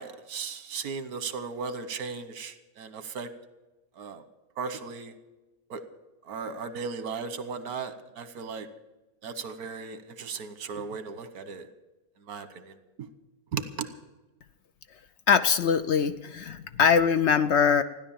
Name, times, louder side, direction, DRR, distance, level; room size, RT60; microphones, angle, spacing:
voice 1, 0.0-3.3 4.0-4.2 4.6-5.1 5.7-5.8 6.3-8.7 9.2-11.7 12.3-12.7 13.5-13.9, right 5 dB, 85° right, 12 dB, 1.5 m, -36 dB
voice 2, 15.3-17.8, left 6 dB, 60° left, 11 dB, 0.8 m, -22 dB
15.5 x 10.5 x 7.2 m, 1.1 s
omnidirectional pair, 1.5 m